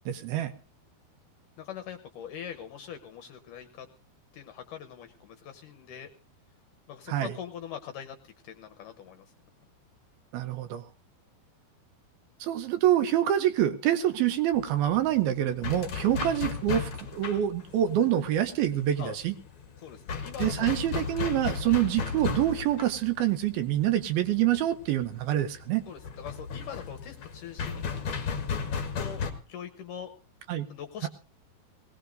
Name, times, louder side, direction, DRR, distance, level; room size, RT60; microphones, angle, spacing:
voice 1, 0.1-0.5 7.1-7.3 10.3-10.8 12.4-19.3 20.4-25.8 30.5-30.7, right 12 dB, 75° right, 9 dB, 2.5 m, -26 dB
voice 2, 1.6-3.9 4.3-6.1 6.9-9.3 19.0-19.2 19.8-20.8 25.9-27.9 28.9-29.2 29.5-30.1 30.7-31.1, left 8 dB, 70° left, 7 dB, 2.1 m, -42 dB
sound 1, 14.5-29.3, left 5 dB, 50° left, 1.6 m, -35 dB
20.5 x 18.0 x 2.6 m, 0.36 s
omnidirectional pair, 4.7 m